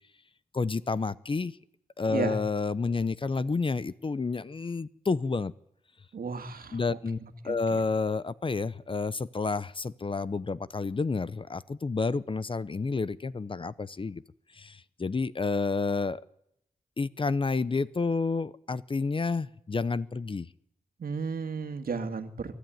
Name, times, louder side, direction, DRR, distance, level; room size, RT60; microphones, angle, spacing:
voice 1, 0.5-1.5 2.0-5.5 6.7-7.2 7.4-14.2 14.5-16.2 17.0-20.5, left 4 dB, 35° left, 18 dB, 0.7 m, -30 dB
voice 2, 6.1-7.0 7.5-7.8 21.0-22.6, right 5 dB, 70° right, 8 dB, 2.1 m, -34 dB
23.5 x 13.5 x 9.3 m, 0.78 s
wide cardioid pair, 90°, 16 cm